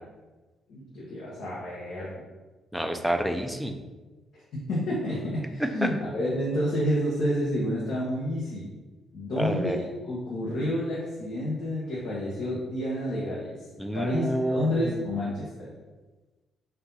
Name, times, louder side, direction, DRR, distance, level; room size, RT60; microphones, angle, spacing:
voice 1, 0.7-2.1 4.3-8.7 9.1-13.6 13.9-15.7, equal, 70° left, -7 dB, 1.2 m, -29 dB
voice 2, 2.7-3.8 5.6-5.9 9.4-9.8 13.8-15.0, right 1 dB, ahead, 5 dB, 0.4 m, -28 dB
4.5 x 2.7 x 4.0 m, 1.2 s
cardioid pair, 135°, 0 cm